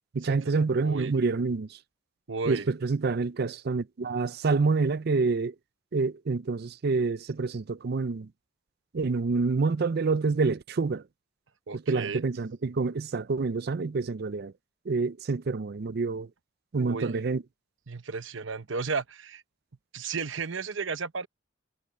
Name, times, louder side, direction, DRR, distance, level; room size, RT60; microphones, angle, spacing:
voice 1, 0.1-1.7 2.5-5.5 5.9-8.3 8.9-11.0 11.7-14.5 14.9-16.3 16.7-17.4, right 4 dB, 50° right, 0.5 m, -27 dB
voice 2, 0.8-1.1 2.3-2.7 11.7-12.2 16.8-17.1 17.9-19.4 19.9-21.3, right 4 dB, 65° right, 0.9 m, -33 dB
head